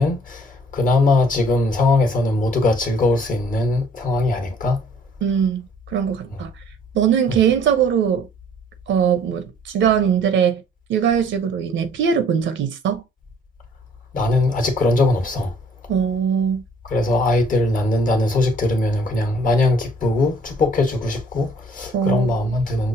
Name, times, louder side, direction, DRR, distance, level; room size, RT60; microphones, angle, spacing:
voice 1, 0.0-4.8 6.3-6.4 7.3-7.4 14.1-15.5 16.9-22.9, left 2 dB, 40° left, 1.3 m, -20 dB
voice 2, 5.2-6.5 6.9-8.3 8.9-10.6 10.9-13.0 15.9-16.6 21.9-22.5, right 8 dB, 70° right, 0.8 m, -20 dB
5.9 x 2.0 x 2.6 m
cardioid pair, 90°, 20 cm